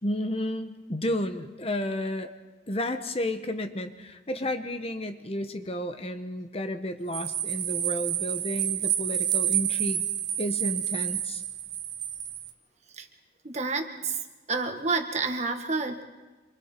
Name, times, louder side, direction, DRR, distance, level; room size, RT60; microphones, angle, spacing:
voice 1, 0.0-2.3 2.7-10.0 10.4-11.4, left 1 dB, 30° left, 7 dB, 1.0 m, -32 dB
sound 1, 7.1-12.5, right 11 dB, 70° right, 1.3 m, -29 dB
voice 2, 13.4-14.2 14.5-16.0, right 4 dB, 35° right, 5 dB, 1.7 m, -29 dB
27.0 x 24.5 x 4.5 m, 1.2 s
head